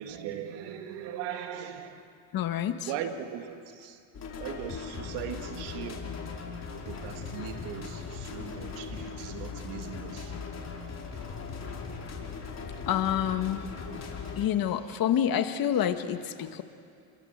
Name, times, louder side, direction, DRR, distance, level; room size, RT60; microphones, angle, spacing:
voice 1, 0.0-2.2 2.9-4.0 4.4-6.2 6.9-10.4 11.1-11.3 11.6-11.8 14.2-14.4, right 9 dB, 85° right, 2.0 m, -39 dB
voice 2, 2.3-2.9 12.9-13.6 14.4-16.6, left 10 dB, 55° left, 1.7 m, -28 dB
sound 1, 4.1-14.4, left 5 dB, 40° left, 4.8 m, -39 dB
30.0 x 22.5 x 8.0 m
cardioid pair, 100°, 41 cm